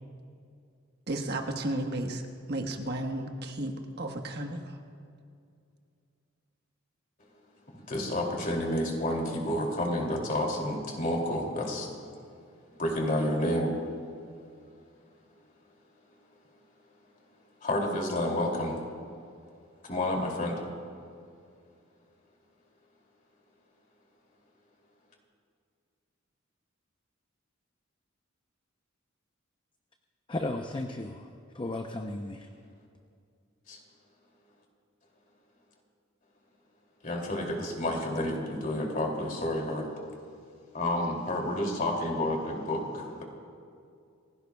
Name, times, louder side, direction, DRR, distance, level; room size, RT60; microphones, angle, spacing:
voice 1, 1.1-2.2 2.5-4.8, right 1 dB, 55° right, 3 dB, 1.3 m, -33 dB
voice 2, 7.7-11.9 12.7-13.8 17.6-18.8 19.8-20.6 33.7-33.8 37.0-39.9 40.7-43.2, left 1 dB, 45° left, 0 dB, 2.7 m, -30 dB
voice 3, 30.3-32.5, left 2 dB, 25° left, 4 dB, 0.6 m, -35 dB
29.5 x 16.5 x 2.3 m, 2.4 s
head